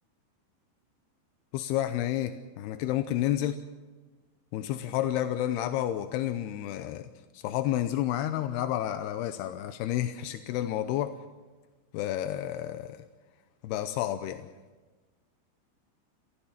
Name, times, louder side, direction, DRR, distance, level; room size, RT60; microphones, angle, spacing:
voice 1, 1.5-3.6 4.5-7.1 7.3-11.1 11.9-13.0 13.6-14.5, left 12 dB, 80° left, 9 dB, 2.5 m, -30 dB
29.5 x 15.5 x 5.9 m, 1.3 s
omnidirectional pair, 5.3 m